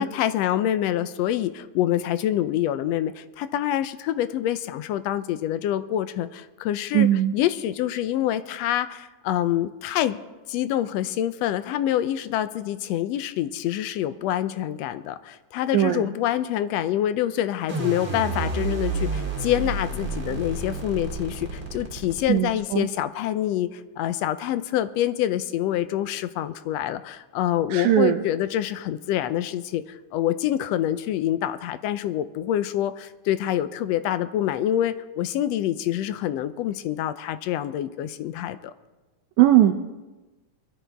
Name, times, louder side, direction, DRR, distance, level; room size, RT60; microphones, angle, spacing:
voice 1, 0.0-10.2 10.5-38.7, left 12 dB, 80° left, 12 dB, 1.6 m, -26 dB
voice 2, 6.9-7.3 15.7-16.0 22.3-22.9 27.7-28.2 39.4-39.7, right 12 dB, 85° right, 4 dB, 2.1 m, -19 dB
sound 1, 17.7-22.7, right 3 dB, 25° right, 2.3 m, -30 dB
22.5 x 13.0 x 3.5 m, 1.1 s
omnidirectional pair, 3.3 m